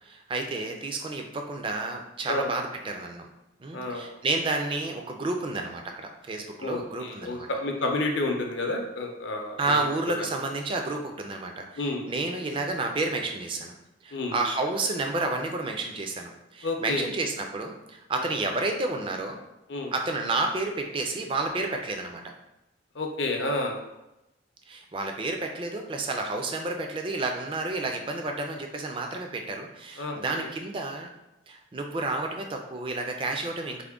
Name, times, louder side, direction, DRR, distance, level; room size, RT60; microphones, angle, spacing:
voice 1, 0.0-3.3 3.6-7.5 9.6-11.8 12.1-13.7 14.0-19.4 19.9-22.2 24.7-31.1 31.5-33.8, right 2 dB, 25° right, 3 dB, 0.3 m, -30 dB
voice 2, 3.7-4.1 6.6-9.8 10.2-10.3 11.8-12.0 14.1-14.3 16.6-17.1 18.2-18.3 19.7-19.9 22.9-23.7 30.0-30.5, left 2 dB, 65° left, 2 dB, 0.5 m, -30 dB
3.6 x 2.1 x 3.5 m, 0.93 s
head